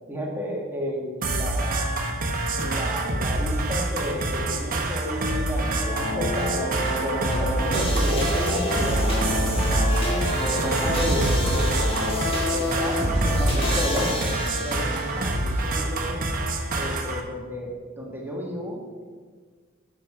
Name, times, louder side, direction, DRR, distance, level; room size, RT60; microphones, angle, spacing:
voice 1, 0.1-1.8 2.6-6.7 7.0-10.1 10.4-11.8 12.5-16.2 16.8-19.0, equal, 10° right, -2 dB, 1.5 m, -32 dB
sound 1, 1.2-17.2, right 2 dB, 40° right, 1.1 m, -27 dB
sound 2, 5.9-15.1, equal, 30° left, 2.3 m, -26 dB
10.0 x 6.2 x 4.8 m, 1.5 s
head